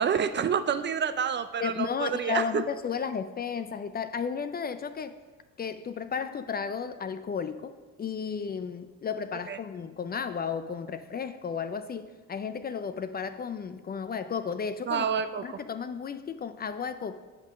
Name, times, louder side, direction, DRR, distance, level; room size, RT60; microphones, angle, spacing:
voice 1, 0.0-2.6 9.5-9.6 14.9-15.4, right 7 dB, 40° right, 11 dB, 0.4 m, -28 dB
voice 2, 1.6-5.2 5.6-15.0 15.4-17.2, left 6 dB, 30° left, 11 dB, 0.4 m, -33 dB
7.8 x 3.8 x 6.1 m, 1.3 s
cardioid pair, 90°, 30 cm